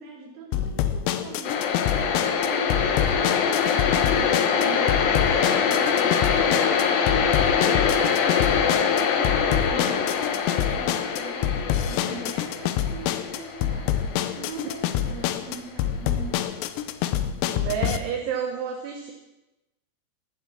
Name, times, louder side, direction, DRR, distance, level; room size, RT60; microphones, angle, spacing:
voice 1, 0.0-3.0 3.2-16.9, right 3 dB, 45° right, -1 dB, 5.1 m, -42 dB
sound 1, 0.5-18.0, left 10 dB, 90° left, 3.6 m, -27 dB
sound 2, 1.4-15.3, left 6 dB, 65° left, 2.5 m, -24 dB
voice 2, 17.5-19.1, right 7 dB, 70° right, 2 dB, 3.6 m, -30 dB
15.0 x 13.0 x 7.4 m, 0.97 s
omnidirectional pair, 6.0 m